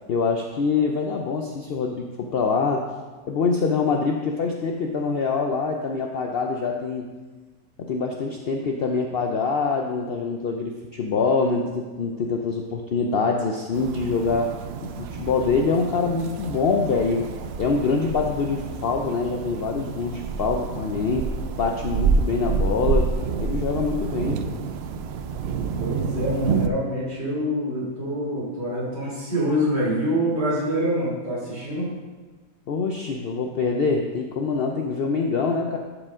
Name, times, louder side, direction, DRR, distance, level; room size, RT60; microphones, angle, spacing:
voice 1, 0.1-2.9 3.3-7.0 7.8-14.6 14.8-17.3 17.6-21.3 21.6-23.1 23.4-24.4 32.7-35.8, left 4 dB, 60° left, 2 dB, 0.7 m, -24 dB
sound 1, 13.7-26.7, right 5 dB, 65° right, 0.6 m, -28 dB
voice 2, 25.8-31.9, equal, 45° right, -7 dB, 3.3 m, -26 dB
12.0 x 5.1 x 3.6 m, 1.3 s
omnidirectional pair, 1.5 m